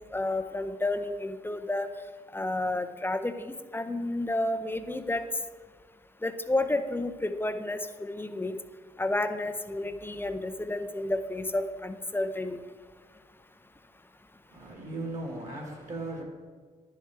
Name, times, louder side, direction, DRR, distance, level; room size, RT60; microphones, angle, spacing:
voice 1, 0.0-1.9 2.3-5.2 6.2-8.6 9.0-12.6, left 2 dB, 10° left, 10 dB, 0.6 m, -31 dB
voice 2, 14.5-16.2, right 2 dB, 40° right, 0 dB, 2.2 m, -37 dB
10.5 x 4.7 x 4.5 m, 1.5 s
supercardioid pair, 50°, 19 cm